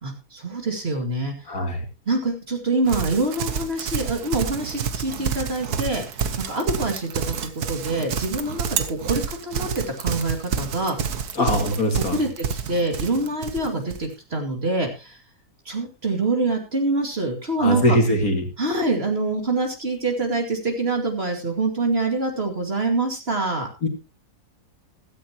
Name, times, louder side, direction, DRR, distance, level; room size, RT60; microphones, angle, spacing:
voice 1, 0.0-1.3 2.1-6.2 6.5-11.5 12.0-15.2 15.7-18.0 18.6-23.7, right 2 dB, 35° right, 3 dB, 2.6 m, -25 dB
voice 2, 1.5-1.8 11.4-12.2 17.6-18.5 23.8-23.9, left 1 dB, 55° left, 4 dB, 2.9 m, -21 dB
Livestock farm animals working animals, 2.9-14.1, right 7 dB, 65° right, 1.6 m, -29 dB
15.5 x 13.0 x 3.0 m, 0.27 s
omnidirectional pair, 1.8 m